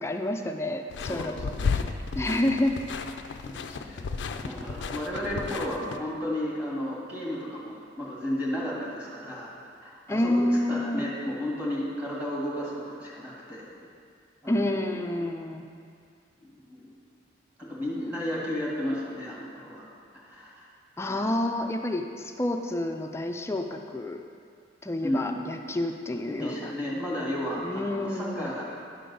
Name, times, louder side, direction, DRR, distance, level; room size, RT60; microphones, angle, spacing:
voice 1, 0.0-1.9 2.2-2.7 10.1-11.0 14.5-15.7 21.0-24.2 24.8-26.7 27.6-28.5, left 1 dB, 15° left, 4 dB, 0.4 m, -29 dB
sound 1, 0.9-6.0, left 5 dB, 75° left, 0.4 m, -33 dB
voice 2, 1.1-2.6 3.4-4.1 4.4-9.5 9.8-13.7 14.4-15.3 16.4-16.9 17.6-19.8 20.2-20.7 21.1-21.4 25.0-25.5 26.3-28.6, left 1 dB, 10° right, -6 dB, 1.8 m, -33 dB
10.0 x 3.8 x 6.8 m, 2.2 s
head